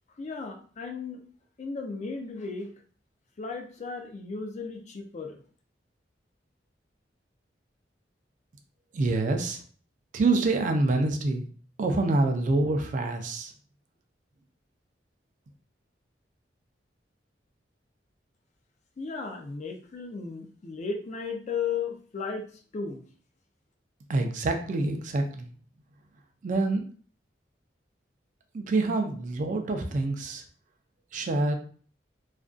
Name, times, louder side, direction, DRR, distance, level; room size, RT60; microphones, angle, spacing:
voice 1, 0.2-1.2 1.6-2.7 3.4-5.4 19.0-22.4 22.7-23.0, left 5 dB, 40° left, 4 dB, 0.4 m, -35 dB
voice 2, 8.9-9.6 10.1-11.5 11.8-13.5 24.1-25.5 26.4-26.9 28.5-30.4 31.1-31.6, right 2 dB, 45° right, 5 dB, 0.4 m, -26 dB
2.4 x 2.2 x 2.4 m, 0.43 s
head